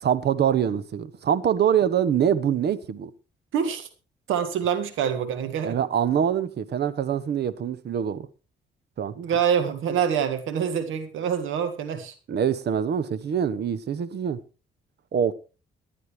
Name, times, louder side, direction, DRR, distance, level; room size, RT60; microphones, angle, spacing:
voice 1, 0.0-3.1 5.6-8.3 9.0-9.1 12.3-14.4 15.1-15.3, right 8 dB, 55° right, 1.1 m, -24 dB
voice 2, 3.5-3.9 4.3-5.8 9.2-12.1, right 8 dB, 80° right, 2.0 m, -26 dB
18.5 x 11.0 x 3.3 m
cardioid pair, 90°, 20 cm